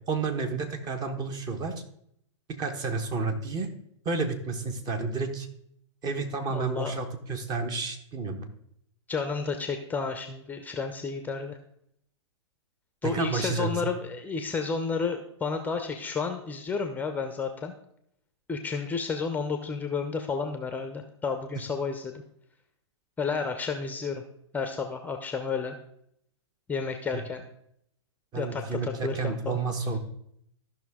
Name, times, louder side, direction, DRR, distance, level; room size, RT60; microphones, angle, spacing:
voice 1, 0.1-1.8 2.5-3.7 4.0-5.5 6.0-8.5 13.0-13.7 28.3-30.0, right 4 dB, 25° right, 7 dB, 1.3 m, -31 dB
voice 2, 6.5-6.9 9.1-11.6 13.0-17.7 18.5-22.1 23.2-24.2 24.5-25.8 26.7-27.4 28.3-29.6, left 5 dB, 10° left, 6 dB, 0.7 m, -31 dB
14.0 x 5.8 x 3.7 m, 0.71 s
hypercardioid pair, 120°, 16 cm